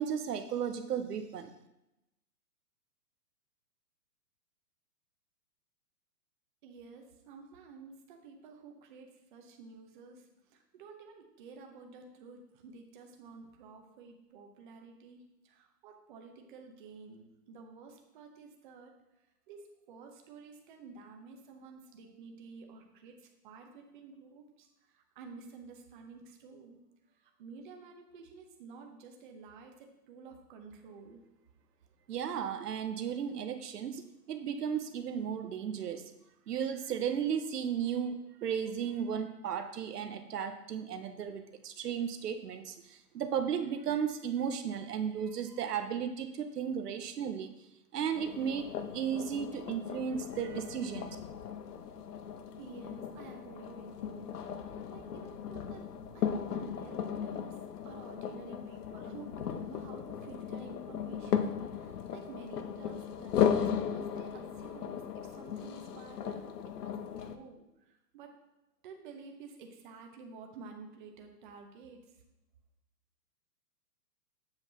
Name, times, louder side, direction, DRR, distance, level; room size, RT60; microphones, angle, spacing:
voice 1, 0.0-1.5 32.1-36.1 36.5-47.5 47.9-51.2, right 8 dB, 70° right, 8 dB, 0.8 m, -35 dB
voice 2, 6.6-19.0 19.5-31.3 52.6-68.5 68.8-72.2, right 4 dB, 30° right, 3 dB, 0.8 m, -51 dB
sound 1, 48.1-67.4, left 8 dB, 70° left, 0.7 m, -36 dB
7.8 x 5.9 x 2.9 m, 0.91 s
hypercardioid pair, 145°, 48 cm